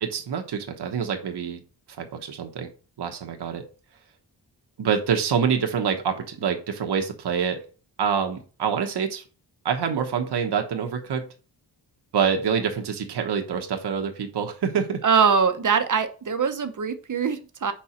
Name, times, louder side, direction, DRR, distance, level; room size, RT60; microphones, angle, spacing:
voice 1, 0.0-1.6 2.0-2.7 3.0-3.6 4.8-7.6 8.0-9.2 9.6-11.2 12.1-15.0, right 7 dB, 70° right, 5 dB, 1.1 m, -26 dB
voice 2, 15.0-17.7, right 6 dB, 45° right, 9 dB, 0.9 m, -22 dB
5.3 x 4.3 x 5.0 m, 0.36 s
cardioid pair, 80°, 42 cm